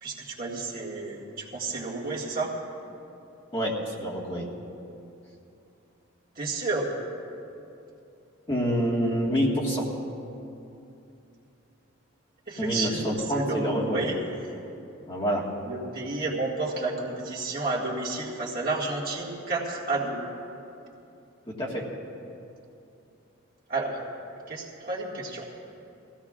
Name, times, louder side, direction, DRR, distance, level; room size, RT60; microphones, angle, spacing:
voice 1, 0.0-2.5 6.4-6.9 12.5-14.2 15.6-20.2 23.7-24.0 24.5-25.5, right 3 dB, 45° right, -5 dB, 2.0 m, -31 dB
voice 2, 3.5-4.5 8.5-9.9 12.6-14.1 15.1-15.5 21.5-21.8, equal, 25° left, -4 dB, 1.6 m, -27 dB
22.0 x 16.0 x 2.5 m, 2.7 s
head